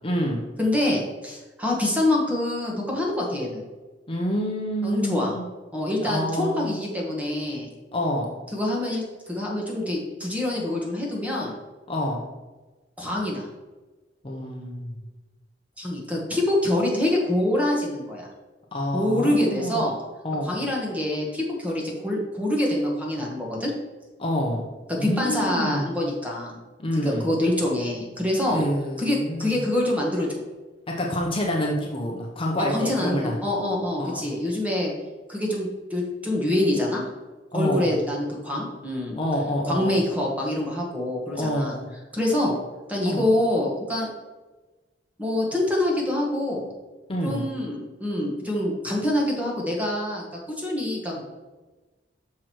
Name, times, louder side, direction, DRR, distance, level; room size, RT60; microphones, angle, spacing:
voice 1, 0.0-0.4 4.1-5.4 6.0-6.8 7.9-8.3 11.9-12.2 14.2-14.9 18.7-19.8 20.2-20.6 24.2-24.6 25.0-25.9 26.8-27.2 28.5-29.6 30.9-33.4 34.0-34.2 37.5-37.9 39.2-40.0 41.3-41.9 43.0-43.2 47.1-47.4, equal, 30° left, -1 dB, 0.9 m, -27 dB
voice 2, 0.6-3.6 4.8-5.4 5.7-7.7 8.5-11.6 13.0-13.5 15.8-18.3 18.9-20.0 20.4-23.7 25.0-26.6 26.9-28.6 29.0-30.4 32.6-34.9 35.3-37.0 37.5-39.2 39.6-41.7 42.1-42.5 42.9-44.1 45.2-46.7 47.2-51.2, left 1 dB, 10° right, -2 dB, 1.5 m, -25 dB
6.3 x 6.0 x 4.6 m, 1.2 s
head